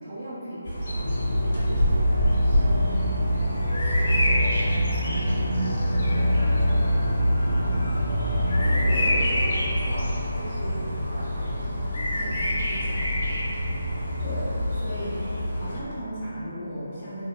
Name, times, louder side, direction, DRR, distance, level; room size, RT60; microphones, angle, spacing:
voice 1, 0.0-3.2 3.5-4.5 5.1-5.4 5.9-7.4 8.6-13.3, right 1 dB, 25° right, -16 dB, 0.6 m, -39 dB
Bird vocalization bird call bird song, 0.6-15.8, equal, 60° left, 1.0 m, -27 dB
sound 1, 1.0-9.0, left 1 dB, 80° right, 0.4 m, -25 dB
sound 2, 3.2-13.0 13.7-13.8, left 1 dB, 80° left, 0.5 m, -37 dB
voice 2, 8.9-9.4 14.2-15.2 15.5-17.3, equal, 35° left, -12 dB, 0.8 m, -35 dB
3.1 x 2.1 x 2.3 m, 3.0 s
figure-of-eight pair, 155°, 0 cm